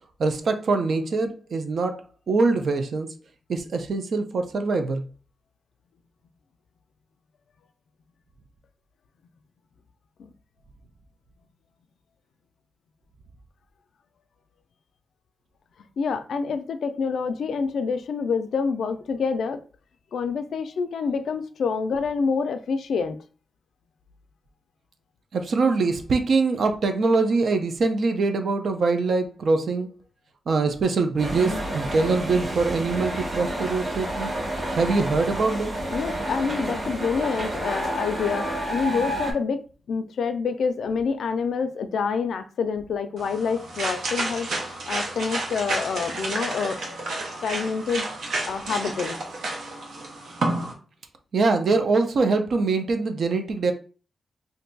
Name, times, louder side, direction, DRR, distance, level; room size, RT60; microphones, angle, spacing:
voice 1, 0.2-3.1 3.5-5.0 25.3-29.9 30.5-34.3 34.8-35.7 51.3-53.7, right 3 dB, 65° right, 0.5 m, -23 dB
voice 2, 16.0-19.6 20.1-23.2 35.9-46.8 47.4-48.1 48.5-49.2, left 5 dB, 85° left, 0.4 m, -27 dB
sound 1, 31.2-39.3, right 1 dB, 40° right, 0.9 m, -29 dB
sound 2, 43.2-50.7, right 2 dB, 90° right, 0.8 m, -30 dB
2.6 x 2.2 x 3.8 m
wide cardioid pair, 125°, 0 cm